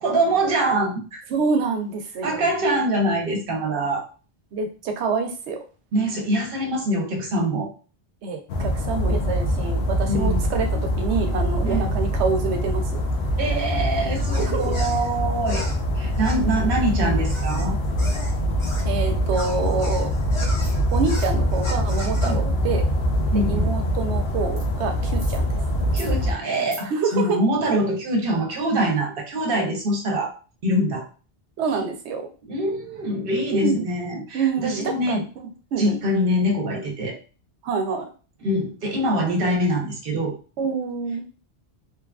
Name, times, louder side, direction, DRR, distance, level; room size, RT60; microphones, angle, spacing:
voice 1, 0.0-1.2 2.2-4.1 5.9-7.7 10.1-10.5 11.6-11.9 13.4-15.7 16.0-17.8 22.2-22.4 23.3-23.7 25.9-30.3 30.6-31.1 32.4-35.3 35.8-37.2 38.4-40.4, right 1 dB, 60° right, 2 dB, 0.8 m, -24 dB
voice 2, 1.3-2.5 4.5-5.6 8.2-13.0 14.3-14.6 18.8-20.1 20.9-22.9 23.5-25.5 26.9-27.4 31.6-32.2 33.5-33.9 34.3-35.2 35.7-36.0 37.6-38.1 40.6-41.2, right 5 dB, 90° right, 5 dB, 0.9 m, -26 dB
sound 1, 8.5-26.3, equal, 75° left, 0.8 m, -24 dB
sound 2, 14.1-18.9 19.3-22.3, left 1 dB, 35° left, 0.5 m, -37 dB
sound 3, 20.6-20.7 21.1-21.3 24.6-24.7 25.1-25.4 25.8-26.1 26.5-26.8, right 2 dB, 35° right, 0.5 m, -41 dB
2.9 x 2.3 x 2.3 m, 0.36 s
omnidirectional pair, 1.1 m